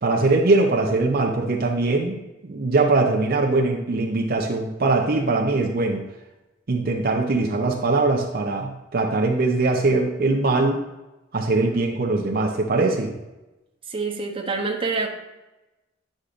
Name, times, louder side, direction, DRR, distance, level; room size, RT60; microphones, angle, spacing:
voice 1, 0.0-6.0 6.7-10.8 11.3-13.1, right 3 dB, 50° right, 0 dB, 0.7 m, -21 dB
voice 2, 13.9-15.1, right 4 dB, 30° right, 1 dB, 0.9 m, -26 dB
9.9 x 6.3 x 2.6 m, 1.0 s
head